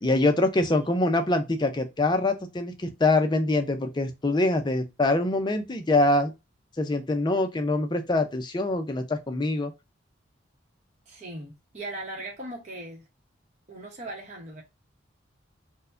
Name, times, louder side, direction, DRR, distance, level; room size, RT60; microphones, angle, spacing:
voice 1, 0.0-6.3 6.8-9.7, left 2 dB, 20° left, 0.5 m, -24 dB
voice 2, 11.1-13.0 13.7-14.6, right 1 dB, 35° right, 0.8 m, -39 dB
4.5 x 2.1 x 2.4 m
head